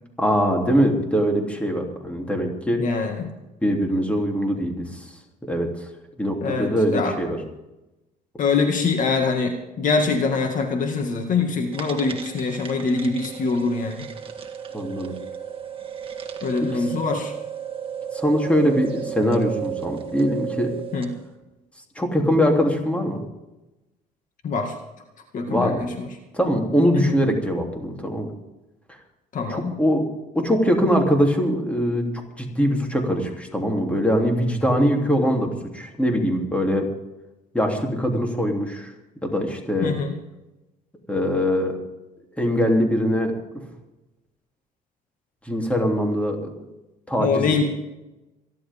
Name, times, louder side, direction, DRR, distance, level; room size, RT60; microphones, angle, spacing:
voice 1, 0.2-2.8 3.6-5.0 5.5-5.7 6.2-7.4 14.7-15.1 16.7-16.8 18.1-20.7 21.9-23.2 25.5-25.8 26.3-28.3 29.5-30.1 30.3-32.0 32.4-36.9 37.5-38.9 39.2-39.9 41.1-41.8 42.4-43.3 45.5-46.5 47.1-47.6, equal, 5° left, 1 dB, 3.3 m, -22 dB
voice 2, 2.8-3.3 6.4-7.1 8.4-14.1 16.4-17.3 20.9-21.1 24.4-24.7 25.3-26.1 26.9-27.2 29.3-29.8 39.8-40.1 47.2-47.6, left 4 dB, 50° left, 3 dB, 2.2 m, -24 dB
sound 1, 11.7-21.2, right 9 dB, 30° right, 1.9 m, -34 dB
27.5 x 11.5 x 3.7 m, 0.99 s
cardioid pair, 110°, 17 cm